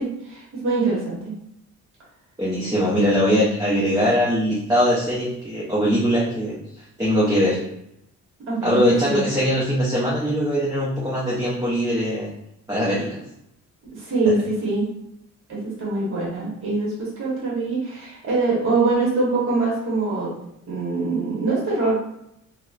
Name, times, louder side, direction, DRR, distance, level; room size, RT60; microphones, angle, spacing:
voice 1, 0.0-1.3 7.5-7.6 8.5-9.2 13.9-14.8 15.5-20.3 20.7-22.0, right 3 dB, 45° right, -6 dB, 1.1 m, -24 dB
voice 2, 2.4-6.6 7.0-7.6 8.6-12.3 12.7-13.2, equal, 10° right, -7 dB, 0.6 m, -21 dB
2.8 x 2.1 x 2.4 m, 0.80 s
cardioid pair, 90°, 30 cm